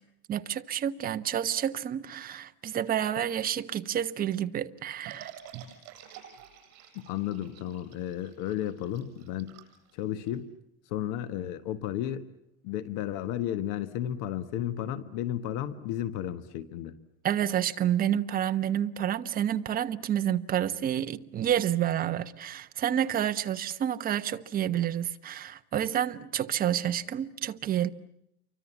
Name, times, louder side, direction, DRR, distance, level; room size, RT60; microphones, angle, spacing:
voice 1, 0.3-5.3 17.2-27.9, right 10 dB, 25° right, 1.1 m, -29 dB
sound 1, 5.1-10.4, right 10 dB, 50° right, 6.7 m, -48 dB
voice 2, 6.9-9.6 9.9-10.5 10.8-12.3 12.6-16.9, left 11 dB, 65° left, 1.5 m, -33 dB
29.0 x 24.5 x 7.2 m
cardioid pair, 160°, 32 cm